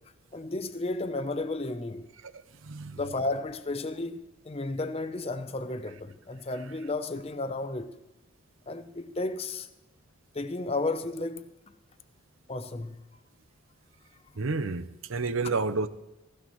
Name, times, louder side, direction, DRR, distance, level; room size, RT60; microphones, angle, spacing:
voice 1, 0.3-2.1 3.0-7.9 8.7-9.7 10.3-11.5 12.5-13.0 15.4-15.5, left 2 dB, 30° left, 0.6 m, -33 dB
voice 2, 2.6-3.0 14.4-15.9, right 3 dB, 85° right, 0.8 m, -30 dB
16.5 x 16.0 x 3.1 m
head